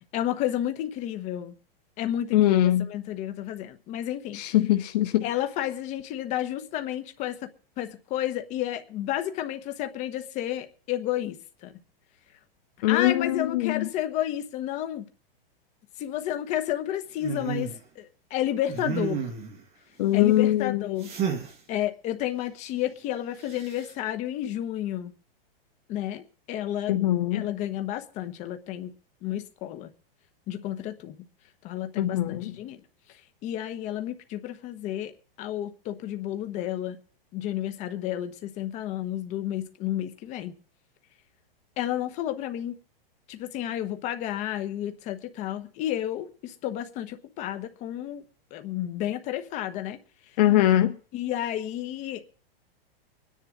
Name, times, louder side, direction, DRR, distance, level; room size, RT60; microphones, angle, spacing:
voice 1, 0.1-1.5 2.0-4.4 5.2-7.5 7.8-11.7 12.9-15.0 16.0-19.2 20.1-21.1 21.7-25.1 25.9-28.9 29.2-29.9 30.5-31.1 31.6-32.8 33.4-35.1 35.4-37.0 37.3-40.6 41.8-42.7 43.3-48.2 48.5-50.0 51.1-52.4, left 12 dB, 25° left, 1.1 m, -31 dB
voice 2, 2.3-2.9 4.3-5.3 12.8-13.9 20.0-21.0 26.9-27.4 32.0-32.5 50.4-51.0, left 14 dB, 45° left, 0.8 m, -22 dB
sound 1, 17.2-17.8 18.7-19.6 21.0-21.5 23.5-23.9, right 7 dB, 20° right, 1.8 m, -31 dB
24.0 x 10.5 x 3.8 m
supercardioid pair, 160°, 29 cm